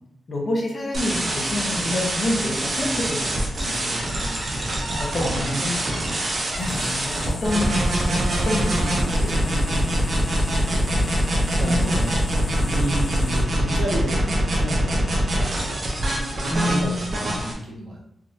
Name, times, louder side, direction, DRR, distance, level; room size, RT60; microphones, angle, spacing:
voice 1, 0.3-4.1 5.0-5.5 6.5-8.2 8.4-10.5 11.6-12.7 16.5-16.9, left 1 dB, 40° left, -1 dB, 0.8 m, -28 dB
sound 1, 0.9-17.5, right 1 dB, 45° right, 0.7 m, -25 dB
voice 2, 5.1-6.8 11.2-12.0 12.6-16.1 16.4-18.1, right 1 dB, 90° right, -4 dB, 1.0 m, -32 dB
sound 2, 6.5-13.4, left 2 dB, 80° left, 0.7 m, -38 dB
3.5 x 2.6 x 2.6 m, 0.74 s
wide cardioid pair, 135°, 0 cm